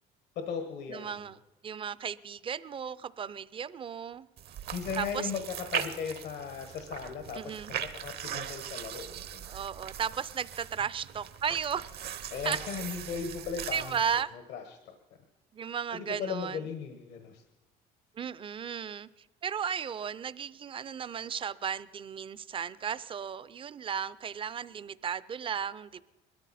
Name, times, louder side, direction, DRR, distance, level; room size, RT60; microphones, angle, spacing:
voice 1, 0.3-1.2 4.7-9.5 12.3-14.2 14.5-14.9 15.9-17.4, left 6 dB, 80° left, 1.2 m, -37 dB
voice 2, 0.9-1.4 1.6-4.3 5.0-5.3 7.3-7.7 9.5-11.9 12.5-12.6 13.7-14.3 15.5-16.6 18.2-19.1 19.4-26.0, right 7 dB, 30° right, 0.4 m, -35 dB
sound 1, 4.4-14.2, right 9 dB, 70° right, 1.0 m, -40 dB
20.5 x 13.0 x 4.2 m
cardioid pair, 110°, 17 cm